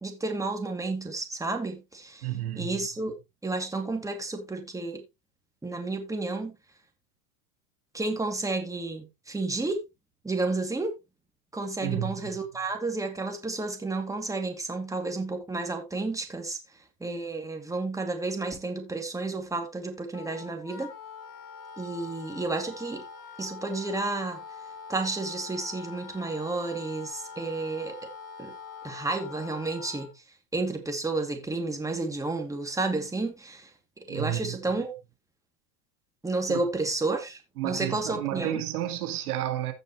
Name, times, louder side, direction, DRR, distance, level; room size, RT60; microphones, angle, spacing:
voice 1, 0.0-2.3 2.6-3.1 3.4-5.0 5.6-6.6 7.9-9.8 10.2-10.9 11.5-16.6 17.0-20.9 21.8-23.0 23.4-24.4 24.9-28.0 28.4-28.5 28.8-30.2 30.5-34.9 36.2-38.6, right 3 dB, 5° right, 2.3 m, -31 dB
voice 2, 2.2-2.9 11.8-12.4 34.1-34.6 36.5-36.6 37.6-39.7, right 13 dB, 85° right, 1.9 m, -31 dB
Wind instrument woodwind instrument, 20.1-30.1, left 5 dB, 45° left, 3.0 m, -44 dB
15.5 x 5.4 x 3.0 m
supercardioid pair, 115°, 43 cm